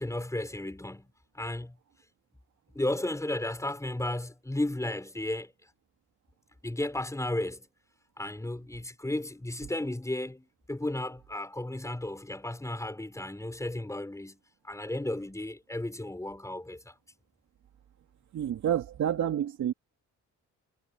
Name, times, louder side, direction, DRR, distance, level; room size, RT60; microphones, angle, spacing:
voice 1, 0.0-1.8 2.7-5.5 6.6-7.7 8.2-16.9, left 1 dB, 10° left, 5.2 m, -34 dB
voice 2, 18.3-19.7, right 10 dB, 65° right, 3.0 m, -29 dB
cardioid pair, 90°, 30 cm